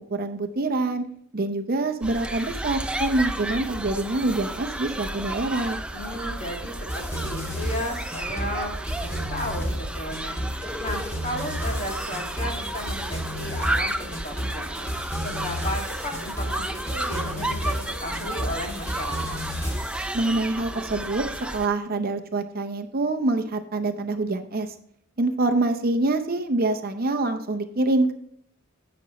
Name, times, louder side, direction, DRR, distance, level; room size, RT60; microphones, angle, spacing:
voice 1, 0.1-1.1 1.3-5.8 20.1-21.2 21.5-24.7 25.2-28.1, right 2 dB, 45° right, 7 dB, 0.7 m, -25 dB
sound 1, 2.0-21.7, right 1 dB, 5° right, 0.4 m, -32 dB
voice 2, 5.9-14.9 15.2-19.3, equal, 35° left, 0 dB, 2.2 m, -34 dB
sound 2, 6.9-20.1, equal, 15° left, 1.7 m, -32 dB
16.0 x 6.1 x 3.1 m, 0.68 s
head